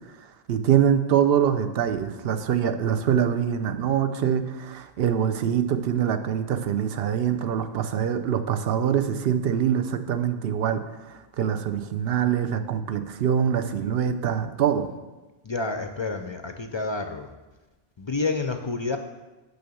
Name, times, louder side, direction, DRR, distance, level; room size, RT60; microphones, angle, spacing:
voice 1, 0.5-10.8 11.4-14.9, right 9 dB, 70° right, 9 dB, 0.8 m, -24 dB
voice 2, 15.4-17.3 18.0-19.0, left 3 dB, 45° left, 6 dB, 0.4 m, -29 dB
6.6 x 5.6 x 6.9 m, 1.2 s
omnidirectional pair, 1.1 m